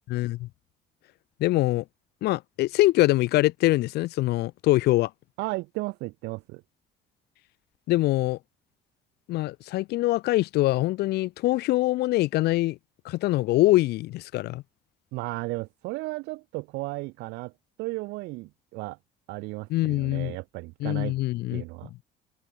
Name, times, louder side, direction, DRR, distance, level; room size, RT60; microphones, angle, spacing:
voice 1, 0.1-0.5 1.4-1.8 2.2-5.1 7.9-8.4 9.3-12.8 13.0-14.6 19.7-20.4 20.8-21.6, left 17 dB, 75° left, 0.6 m, -24 dB
voice 2, 5.4-6.6 15.1-17.5 17.8-19.0 19.3-21.1 21.5-21.9, right 22 dB, 90° right, 0.5 m, -34 dB
open air
cardioid pair, 110°, 17 cm